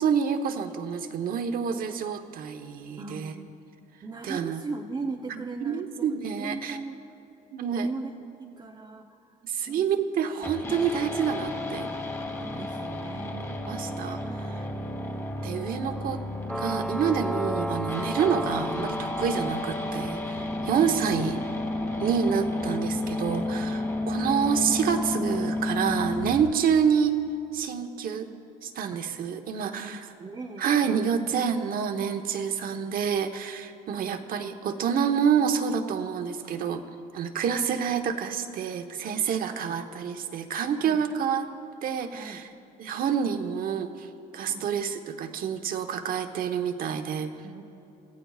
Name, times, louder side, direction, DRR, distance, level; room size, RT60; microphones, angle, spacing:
voice 1, 0.0-3.3 4.2-4.6 5.3-6.8 7.5-7.9 9.4-11.9 13.3-14.2 15.4-16.2 16.5-21.4 22.0-27.1 27.5-28.3 28.6-30.1 30.6-36.8 37.1-41.5 41.8-42.5 42.8-44.1 44.3-47.3, right 7 dB, 60° right, 6 dB, 1.0 m, -28 dB
voice 2, 3.0-3.5 4.0-7.0 7.6-8.1 8.4-9.1 9.6-10.0 10.4-10.5 12.4-13.4 20.7-21.0 22.3-22.5 24.1-24.3 28.9-29.0 29.6-31.2 32.7-32.8 33.9-34.3 39.3-39.8 40.8-41.0 42.1-42.4 44.5-44.7 47.4-47.6, right 3 dB, 25° right, 1 dB, 0.8 m, -39 dB
sound 1, 10.4-26.4, left 2 dB, 20° left, 2.1 m, -32 dB
sound 2, 16.5-20.5, equal, ahead, 0.3 m, -34 dB
26.0 x 15.0 x 2.4 m, 2.9 s
cardioid pair, 110°, 17 cm